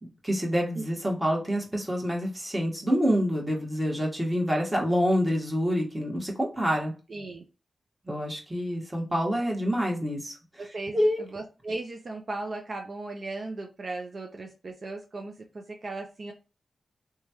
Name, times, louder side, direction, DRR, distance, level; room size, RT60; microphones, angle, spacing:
voice 1, 0.0-6.9 8.0-10.3 10.9-11.2, equal, 20° right, -1 dB, 1.4 m, -27 dB
voice 2, 7.1-7.4 10.6-16.3, right 2 dB, 60° right, 2 dB, 0.5 m, -37 dB
3.0 x 2.3 x 2.9 m, 0.32 s
cardioid pair, 50°, 0 cm